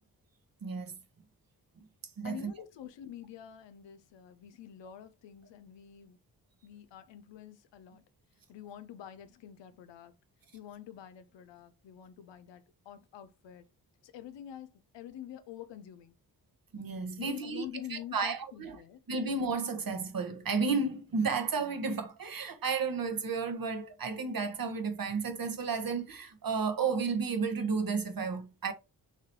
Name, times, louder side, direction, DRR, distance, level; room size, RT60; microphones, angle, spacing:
voice 1, 0.6-0.9 2.2-2.5 16.7-17.6 17.9-18.8 19.1-28.7, right 4 dB, 50° right, 1.3 m, -32 dB
voice 2, 2.2-6.2 6.6-8.0 8.5-10.1 10.5-13.6 14.0-16.1 17.2-19.0, left 10 dB, 80° left, 0.8 m, -47 dB
5.7 x 3.1 x 2.8 m
supercardioid pair, 40°, 43 cm